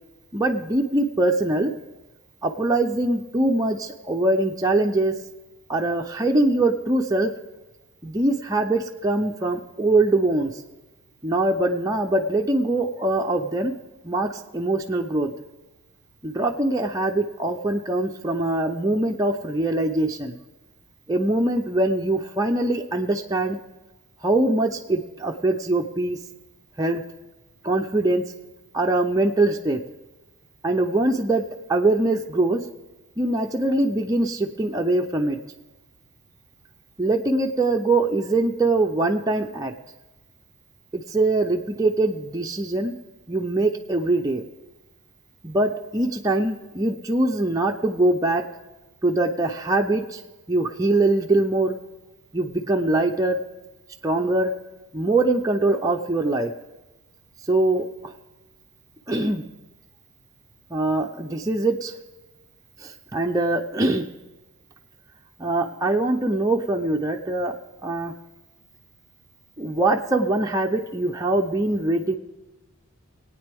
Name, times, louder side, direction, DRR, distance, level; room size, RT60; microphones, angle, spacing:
voice 1, 0.3-1.7 2.4-5.1 5.7-7.3 8.0-10.5 11.2-13.7 14.0-15.3 16.2-20.4 21.1-23.6 24.2-26.2 26.8-27.0 27.6-28.2 28.7-29.8 30.6-31.4 31.7-32.6 33.2-35.4 37.0-39.7 40.9-42.9 43.3-44.4 45.4-48.4 49.0-50.2 50.5-51.8 52.3-53.4 54.0-54.5 54.9-56.5 57.5-58.1 59.1-59.4 60.7-61.9 62.8-64.1 65.4-67.5 67.8-68.1 69.6-72.2, right 2 dB, 15° right, 1 dB, 0.5 m, -23 dB
21.0 x 8.9 x 3.5 m, 1.1 s
head